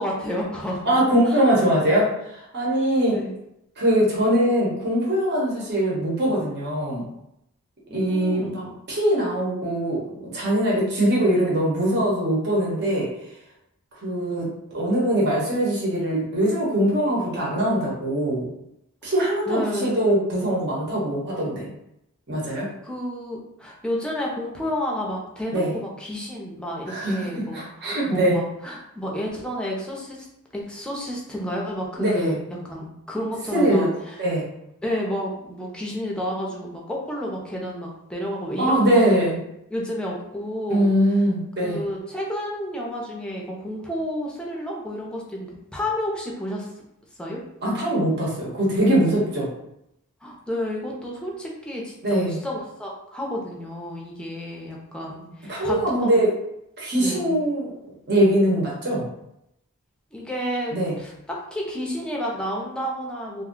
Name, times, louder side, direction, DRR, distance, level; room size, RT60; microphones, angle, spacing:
voice 1, 0.0-0.9 1.3-1.4 3.1-3.3 7.9-8.5 19.5-20.0 22.5-30.3 30.5-32.3 32.6-34.1 34.8-39.4 39.7-40.9 41.6-46.7 47.2-47.4 50.2-56.2 57.0-57.4 60.1-63.4, equal, 5° left, -3 dB, 0.6 m, -31 dB
voice 2, 0.9-3.2 3.8-7.1 7.9-13.1 14.0-14.5 14.7-18.5 19.0-21.7 22.3-22.7 25.5-25.7 26.9-28.3 32.0-32.4 33.5-33.9 34.2-34.4 38.6-39.4 40.7-41.8 47.6-49.5 52.0-52.4 55.5-56.3 56.8-57.7 58.1-59.1 60.7-60.9, right 1 dB, 50° right, -4 dB, 1.0 m, -22 dB
2.6 x 2.2 x 3.7 m, 0.81 s
head